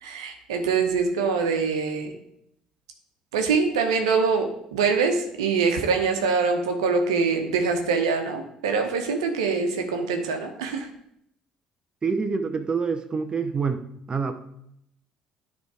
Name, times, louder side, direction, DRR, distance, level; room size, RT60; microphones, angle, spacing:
voice 1, 0.0-2.1 3.3-10.9, right 5 dB, 85° right, 4 dB, 1.0 m, -24 dB
voice 2, 12.0-13.8 14.1-14.3, right 5 dB, 30° right, 8 dB, 0.8 m, -26 dB
10.5 x 3.5 x 4.8 m, 0.74 s
hypercardioid pair, 60°, 3 cm